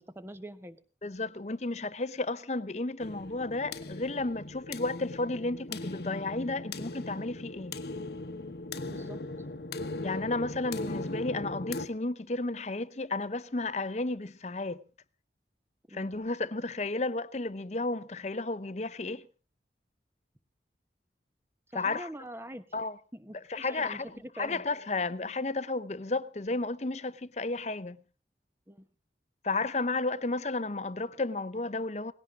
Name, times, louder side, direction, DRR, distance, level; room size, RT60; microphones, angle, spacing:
voice 1, 0.0-0.8 8.9-9.2 15.9-16.1 21.7-22.6 23.1-24.6 28.7-28.9, right 1 dB, 15° right, 1.1 m, -44 dB
voice 2, 1.0-7.7 10.0-14.8 15.9-19.3 21.7-22.1 22.7-23.0 23.3-28.0 29.4-32.1, left 3 dB, 40° left, 0.8 m, -33 dB
sound 1, 3.0-11.9, left 2 dB, 70° left, 1.2 m, -39 dB
19.0 x 17.0 x 3.7 m
head